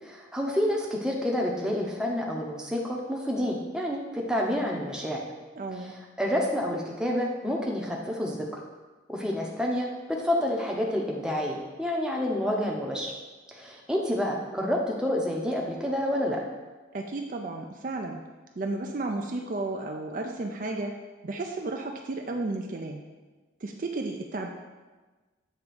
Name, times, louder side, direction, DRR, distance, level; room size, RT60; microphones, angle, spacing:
voice 1, 0.0-5.2 5.7-5.9 6.2-8.5 9.1-13.1 13.5-16.4, left 1 dB, 5° right, -1 dB, 0.7 m, -29 dB
voice 2, 5.5-5.9 16.9-18.2 18.6-21.0 21.2-23.0 23.6-24.5, right 2 dB, 45° right, 3 dB, 0.4 m, -33 dB
7.7 x 3.6 x 5.1 m, 1.3 s
head